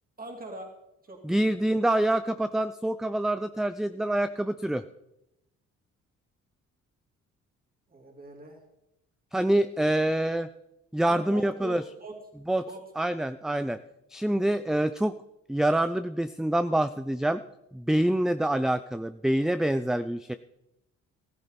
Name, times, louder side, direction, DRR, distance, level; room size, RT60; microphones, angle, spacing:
voice 1, 0.2-0.7 1.1-1.4 7.9-8.6 11.0-12.2 12.6-12.8, right 2 dB, 30° right, 2 dB, 3.1 m, -42 dB
voice 2, 1.2-4.8 9.3-10.5 10.9-11.8 12.5-12.6 13.0-13.8 14.1-15.1 15.5-17.4 17.7-20.3, right 1 dB, ahead, 12 dB, 0.4 m, -26 dB
15.0 x 14.0 x 4.2 m, 0.88 s
cardioid pair, 90°, 30 cm